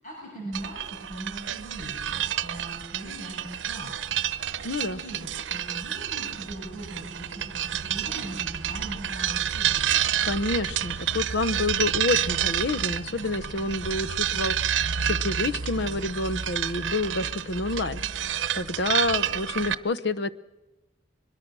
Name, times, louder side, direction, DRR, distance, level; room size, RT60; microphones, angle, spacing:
voice 1, 0.0-4.2 4.9-9.9, right 1 dB, 45° left, -2 dB, 6.2 m, -40 dB
sound 1, 0.5-19.7, right 9 dB, 90° right, 0.8 m, -29 dB
voice 2, 4.6-5.0 10.2-18.0 18.5-20.3, left 2 dB, 65° left, 16 dB, 0.8 m, -28 dB
23.0 x 21.5 x 6.2 m, 1.1 s
head